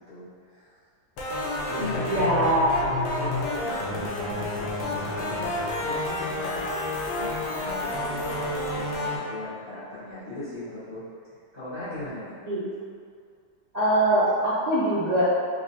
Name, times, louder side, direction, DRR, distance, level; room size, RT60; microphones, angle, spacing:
voice 1, 0.1-0.8 1.7-2.3 3.2-5.5 5.8-6.7 7.2-11.0 11.5-12.4, left 2 dB, 25° left, -19 dB, 1.3 m, -38 dB
sound 1, 1.2-9.2, left 1 dB, 70° left, 1.3 m, -29 dB
voice 2, 2.1-3.0 12.5-12.6 13.7-15.2, right 1 dB, 60° right, -13 dB, 0.4 m, -22 dB
4.0 x 3.0 x 2.7 m, 2.2 s
omnidirectional pair, 1.9 m